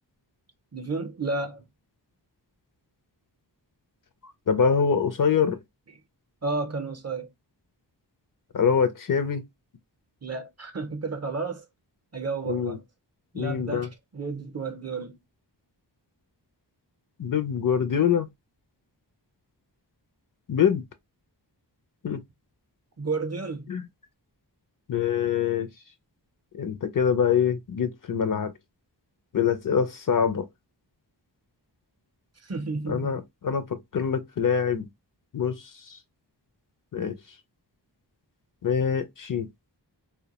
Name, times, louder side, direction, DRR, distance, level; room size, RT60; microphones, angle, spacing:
voice 1, 0.7-1.6 6.4-7.3 10.2-11.6 12.1-12.8 13.3-15.2 23.0-23.7 32.4-33.1, right 3 dB, 35° right, 0.5 m, -32 dB
voice 2, 4.5-5.6 8.5-9.4 12.5-12.8 13.3-13.9 17.2-18.3 20.5-20.8 22.0-22.2 23.7-23.8 24.9-25.7 26.6-28.5 29.3-30.5 32.9-34.9 35.3-35.6 35.9-36.0 36.9-37.2 38.6-39.5, left 7 dB, 50° left, 0.5 m, -24 dB
2.2 x 2.1 x 2.8 m
wide cardioid pair, 85°, 43 cm